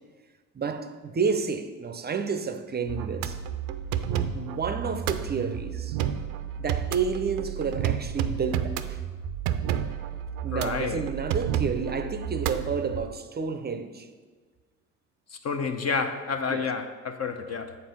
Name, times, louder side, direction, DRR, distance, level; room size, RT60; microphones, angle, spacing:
voice 1, 0.5-3.4 4.3-6.0 6.6-9.0 10.4-14.1 16.5-16.7, right 5 dB, 25° right, 0.6 m, -30 dB
sound 1, 2.9-13.1, right 9 dB, 75° right, 0.6 m, -31 dB
voice 2, 10.5-11.0 15.3-17.8, left 5 dB, 35° left, 0.7 m, -30 dB
7.7 x 4.1 x 5.5 m
hypercardioid pair, 60°, 43 cm